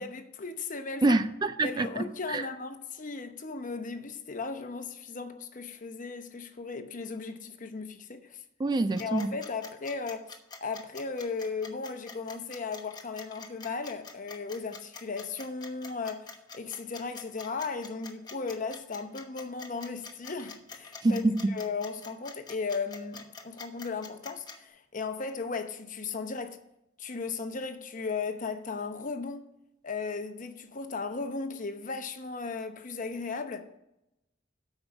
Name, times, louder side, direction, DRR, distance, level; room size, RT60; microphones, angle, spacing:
voice 1, 0.0-1.2 1.6-8.4 9.0-10.3 10.6-26.6 27.0-29.5 29.8-33.7, left 4 dB, 45° left, 0.9 m, -36 dB
voice 2, 1.0-2.5 8.6-9.3 21.0-21.5, right 2 dB, 20° right, 0.3 m, -26 dB
sound 1, 9.0-24.6, left 4 dB, 20° left, 1.1 m, -45 dB
8.8 x 5.5 x 7.1 m
head